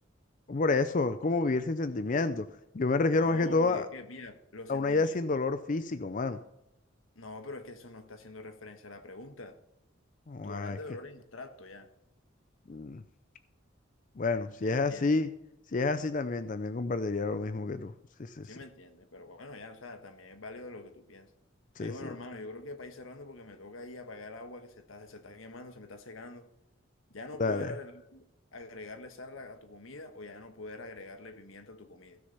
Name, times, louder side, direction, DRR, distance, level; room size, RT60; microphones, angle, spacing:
voice 1, 0.5-2.5 2.7-3.9 4.7-6.4 10.3-10.8 12.7-13.0 14.2-15.3 15.7-17.9 18.2-18.5 21.8-22.1 27.4-27.7, left 3 dB, 40° left, 0.5 m, -29 dB
voice 2, 3.1-5.2 7.1-9.6 10.4-11.9 14.6-15.1 18.4-21.3 21.8-26.5 27.1-28.2 28.5-32.2, left 2 dB, 90° left, 1.4 m, -45 dB
15.5 x 6.7 x 5.6 m
head